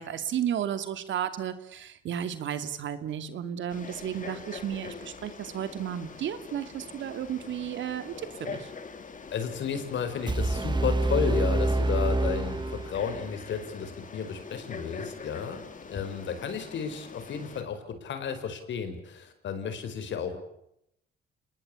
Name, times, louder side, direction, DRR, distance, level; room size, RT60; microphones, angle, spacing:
voice 1, 0.0-8.7, right 9 dB, 70° right, 11 dB, 2.5 m, -33 dB
Frog, 3.7-17.6, left 5 dB, 40° left, 3.3 m, -44 dB
voice 2, 9.3-15.6 15.9-20.4, left 7 dB, 70° left, 9 dB, 4.9 m, -33 dB
sound 1, 10.3-13.2, right 2 dB, 20° right, 2.1 m, -27 dB
27.5 x 20.0 x 8.6 m, 0.79 s
cardioid pair, 90°, 20 cm